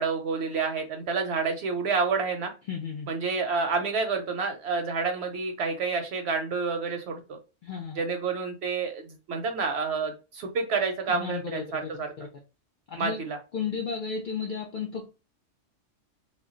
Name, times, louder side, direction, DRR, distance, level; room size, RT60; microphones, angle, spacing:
voice 1, 0.0-2.5 3.1-7.4 8.0-12.1 13.0-13.4, right 4 dB, 65° right, 0.7 m, -29 dB
voice 2, 2.7-3.1 7.6-8.0 11.1-11.6 12.2-12.3 12.9-13.2 13.5-15.1, left 6 dB, 65° left, 0.5 m, -33 dB
2.2 x 2.2 x 3.6 m
omnidirectional pair, 1.3 m